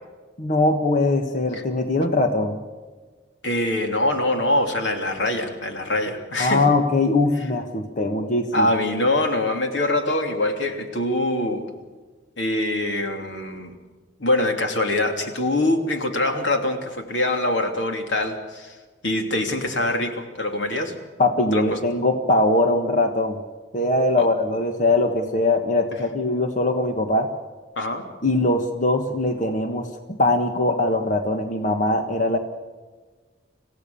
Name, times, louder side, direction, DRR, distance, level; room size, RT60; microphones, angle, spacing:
voice 1, 0.4-2.6 6.4-8.7 21.2-23.4 23.7-27.3 28.2-29.9 30.2-32.4, left 2 dB, 45° left, 5 dB, 1.5 m, -21 dB
voice 2, 3.4-6.6 8.5-11.6 12.4-13.7 14.2-18.8 19.0-20.9 21.5-21.8 24.2-24.3 27.8-28.0, left 1 dB, 90° left, 4 dB, 3.0 m, -24 dB
27.5 x 16.0 x 7.1 m, 1.4 s
head